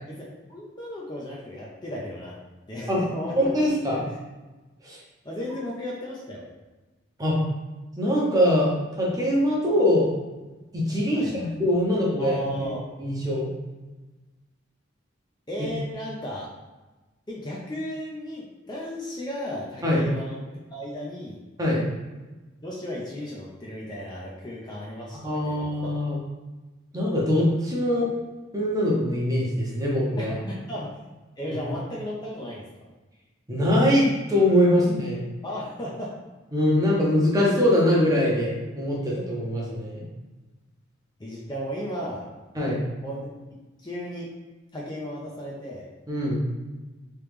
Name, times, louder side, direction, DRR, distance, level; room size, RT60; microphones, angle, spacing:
voice 1, 0.5-2.4 2.7-3.5 3.9-4.0 5.2-6.5 11.1-11.5 12.2-12.8 15.5-16.5 17.3-20.4 20.7-21.4 22.6-26.0 30.2-31.0 31.4-32.6 35.4-36.2 41.2-42.3 43.0-43.3 43.8-44.3 44.7-45.9, equal, 20° left, -4 dB, 0.4 m, -34 dB
voice 2, 3.4-4.0 4.8-5.0 7.2-7.4 8.0-10.1 10.7-12.7 13.0-13.5 19.8-20.0 21.6-21.8 25.1-26.2 26.9-28.1 28.5-30.4 31.5-31.6 33.5-35.2 36.5-40.1 42.6-42.8 46.1-46.4, left 1 dB, 20° right, -4 dB, 0.7 m, -23 dB
3.2 x 2.9 x 3.4 m, 1.2 s
head